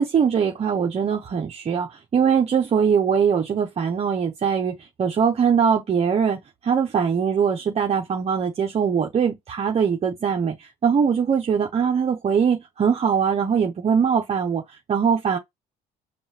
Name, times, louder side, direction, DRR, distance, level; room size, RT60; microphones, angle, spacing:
voice 1, 0.0-14.6 14.9-15.4, right 7 dB, 40° right, 0.9 m, -22 dB
5.4 x 2.4 x 2.8 m
cardioid pair, 110°, 17 cm